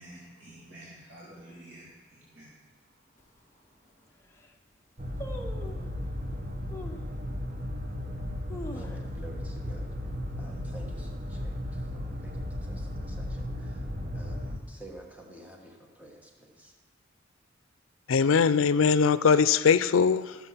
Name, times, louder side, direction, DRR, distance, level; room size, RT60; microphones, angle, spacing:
voice 1, 0.0-2.5, right 1 dB, 90° right, -8 dB, 2.7 m, -49 dB
sound 1, 3.2-3.3 3.9-4.0 4.2-4.6 5.2-5.9 6.7-7.1 7.6-7.7 8.3-9.4 9.7-9.8 10.1-10.5 10.9-11.2 11.9-12.6 12.9-13.0, equal, 15° left, 0.8 m, -42 dB
sound 2, 5.0-14.6, left 1 dB, 35° right, 1.1 m, -35 dB
voice 2, 8.7-9.9 10.4-13.9 14.1-16.7, right 1 dB, 10° right, 0 dB, 1.3 m, -50 dB
voice 3, 18.1-20.4, left 6 dB, 85° left, 15 dB, 0.5 m, -21 dB
13.5 x 7.2 x 5.6 m, 1.3 s
head